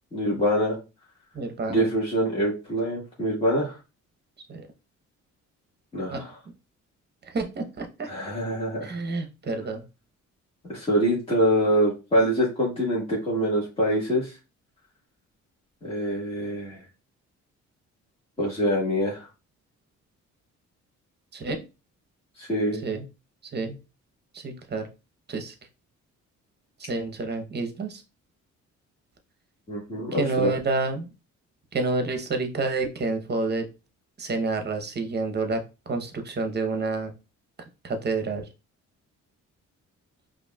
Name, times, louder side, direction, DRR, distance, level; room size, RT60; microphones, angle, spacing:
voice 1, 0.1-0.8 1.7-3.8 5.9-6.3 8.1-8.9 10.7-14.3 15.8-16.8 18.4-19.3 22.4-22.8 29.7-30.5, equal, 20° left, -6 dB, 1.6 m, -25 dB
voice 2, 1.3-1.9 4.5-4.7 6.1-6.2 7.2-8.1 8.8-9.8 21.3-21.6 22.7-23.1 23.5-23.8 24.3-24.8 25.3-25.5 26.8-28.0 30.1-31.1 31.7-33.7 34.2-37.1 37.8-38.5, right 3 dB, 35° right, 6 dB, 0.9 m, -29 dB
5.2 x 2.6 x 2.3 m, 0.29 s
cardioid pair, 90°, 30 cm